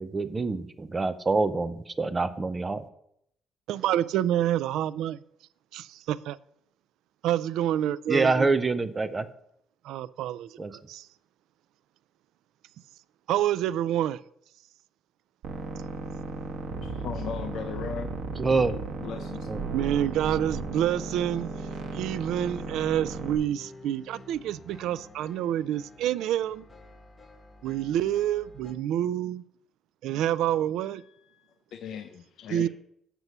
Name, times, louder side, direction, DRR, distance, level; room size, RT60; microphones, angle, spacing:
voice 1, 0.0-2.9 8.1-9.3 10.6-10.7 18.4-18.8 19.5-19.7, right 3 dB, 15° right, 0.5 m, -26 dB
voice 2, 3.7-5.2 5.7-6.4 7.2-8.5 9.8-11.1 13.3-14.2 19.7-21.5 21.9-26.6 27.6-29.4 30.0-31.0 32.5-32.7, right 11 dB, 85° right, 0.3 m, -28 dB
sound 1, 15.4-23.3, right 4 dB, 70° right, 1.2 m, -35 dB
voice 3, 17.0-18.2 19.0-19.5 30.9-31.0 31.7-32.7, left 7 dB, 60° left, 0.5 m, -37 dB
sound 2, 19.8-28.7, left 2 dB, 15° left, 1.1 m, -51 dB
8.0 x 6.0 x 5.4 m
cardioid pair, 170°, 0 cm